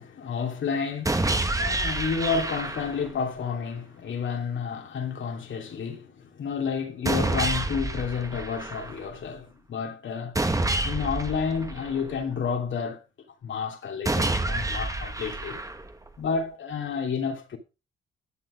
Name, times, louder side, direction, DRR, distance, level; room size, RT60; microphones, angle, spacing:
voice 1, 0.0-10.3 10.8-13.0 13.4-15.6 16.2-17.6, left 6 dB, 65° left, 2.8 m, -30 dB
sound 1, 1.0-3.1 7.0-9.1 10.3-12.4 14.0-16.1, right 2 dB, 15° right, 1.4 m, -28 dB
11.5 x 7.3 x 5.1 m
cardioid pair, 75°, 21 cm